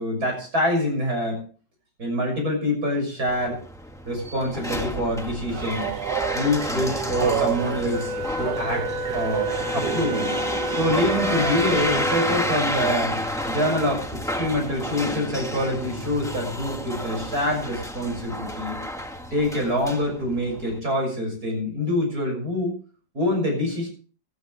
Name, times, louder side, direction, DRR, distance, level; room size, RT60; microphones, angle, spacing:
voice 1, 0.0-1.4 2.0-3.6 4.1-5.9 6.3-8.1 8.4-8.9 9.1-10.3 10.7-13.2 13.5-18.8 19.3-22.8 23.1-23.9, left 1 dB, 60° right, 2 dB, 7.2 m, -25 dB
sound 1, 3.3-20.8, left 1 dB, ahead, 1.3 m, -30 dB
Train, 5.5-11.2, right 10 dB, 85° right, 1.5 m, -30 dB
Wind instrument woodwind instrument, 7.9-12.5, left 2 dB, 30° right, 1.3 m, -30 dB
18.5 x 12.5 x 3.3 m, 0.39 s
omnidirectional pair, 1.8 m